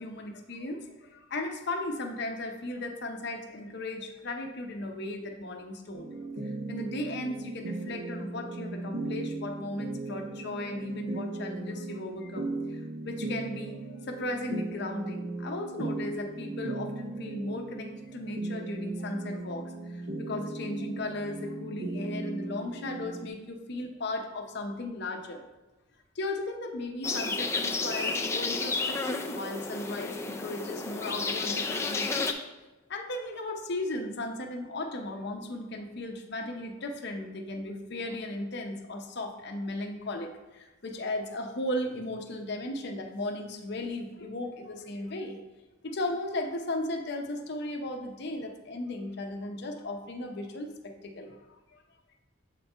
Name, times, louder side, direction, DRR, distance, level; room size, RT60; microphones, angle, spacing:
voice 1, 0.0-6.1 6.4-12.8 13.0-25.4 26.2-32.5 32.9-45.4 45.8-51.4, left 2 dB, 55° left, 3 dB, 0.7 m, -36 dB
sound 1, 5.9-23.3, right 2 dB, 50° right, 0.8 m, -37 dB
sound 2, 27.0-32.3, left 3 dB, 15° left, 0.3 m, -31 dB
7.5 x 4.3 x 3.4 m, 1.1 s
head